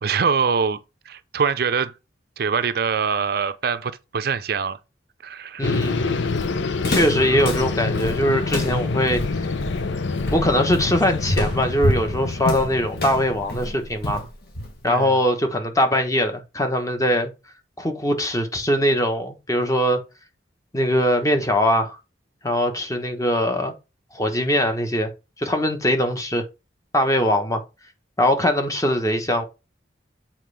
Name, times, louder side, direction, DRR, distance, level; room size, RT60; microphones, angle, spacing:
voice 1, 0.0-0.8 1.1-1.9 2.4-4.8 5.2-5.8 14.9-15.1, right 6 dB, 55° right, 0.5 m, -23 dB
sound 1, 5.6-13.9, left 4 dB, 80° left, 0.7 m, -27 dB
voice 2, 5.6-6.3 6.9-9.5 10.3-14.3 14.8-17.3 17.8-20.0 20.7-22.0 22.4-23.7 24.1-25.1 25.4-26.4 26.9-27.6 28.2-29.4, equal, 20° left, 1.1 m, -21 dB
Walk footsteps, 5.7-15.0, left 1 dB, 60° left, 2.2 m, -28 dB
7.6 x 4.3 x 3.3 m
head